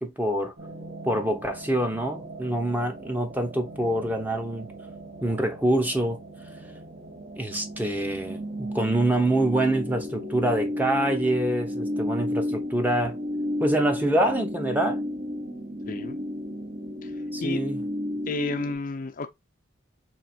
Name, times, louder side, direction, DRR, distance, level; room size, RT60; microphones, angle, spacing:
voice 1, 0.0-0.5 1.0-4.7 5.2-6.2 7.4-13.2 13.6-15.1 17.3-17.8, right 1 dB, 10° right, 0.8 m, -25 dB
sound 1, 0.6-18.7, left 1 dB, 45° right, 1.0 m, -34 dB
voice 2, 15.9-16.2 17.0-17.1 17.4-17.6 18.3-19.3, left 3 dB, 45° left, 0.5 m, -31 dB
4.6 x 3.4 x 2.5 m
head